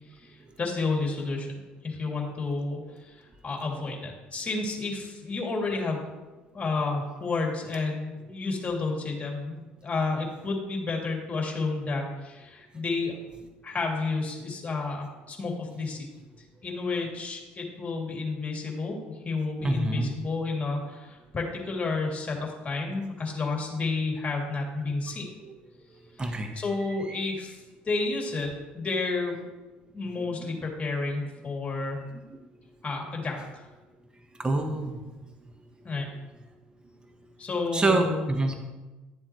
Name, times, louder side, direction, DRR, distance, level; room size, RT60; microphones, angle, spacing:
voice 1, 0.2-6.1 6.5-13.2 13.6-16.1 16.6-19.0 19.2-25.3 26.2-29.4 29.9-32.0 32.8-33.6 35.8-36.1 37.4-38.3, left 3 dB, 30° left, 0 dB, 2.8 m, -31 dB
voice 2, 19.6-20.1 26.2-26.5 34.4-35.0 37.7-38.5, right 2 dB, 20° right, 5 dB, 1.1 m, -26 dB
11.5 x 7.6 x 3.1 m, 1.2 s
hypercardioid pair, 65°, 5 cm